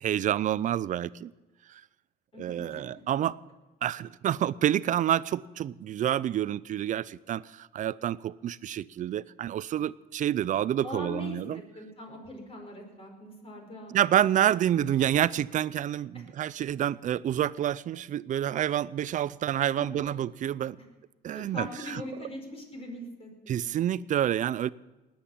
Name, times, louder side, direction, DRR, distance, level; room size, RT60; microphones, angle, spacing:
voice 1, 0.0-1.3 1.7-1.8 2.4-3.4 3.8-11.6 13.9-20.8 21.2-22.0 23.5-24.7, right 11 dB, 50° right, 19 dB, 0.5 m, -28 dB
voice 2, 2.3-2.8 10.8-14.2 16.1-16.2 19.5-20.1 20.8-20.9 21.3-23.7, left 1 dB, 35° left, 3 dB, 5.0 m, -42 dB
20.0 x 8.8 x 7.3 m, 1.2 s
cardioid pair, 110°, 17 cm